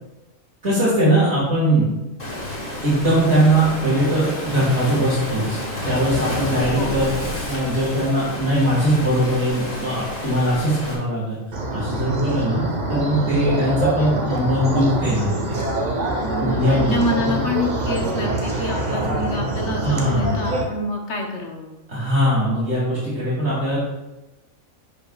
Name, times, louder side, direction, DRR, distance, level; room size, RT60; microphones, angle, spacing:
voice 1, 0.6-1.9 2.8-5.6 5.8-7.1 7.5-11.4 11.7-12.6 12.9-15.6 16.4-17.4 19.8-20.4 21.9-23.8, right 1 dB, 55° right, -8 dB, 2.6 m, -20 dB
Waves surf, 2.2-10.9, left 1 dB, 30° left, 1.5 m, -30 dB
voice 2, 6.7-7.1 16.2-21.7, left 1 dB, 60° left, 1 dB, 1.3 m, -27 dB
sound 1, 11.5-20.6, right 2 dB, 35° right, 1.1 m, -25 dB
10.5 x 5.7 x 2.4 m, 0.99 s
omnidirectional pair, 1.4 m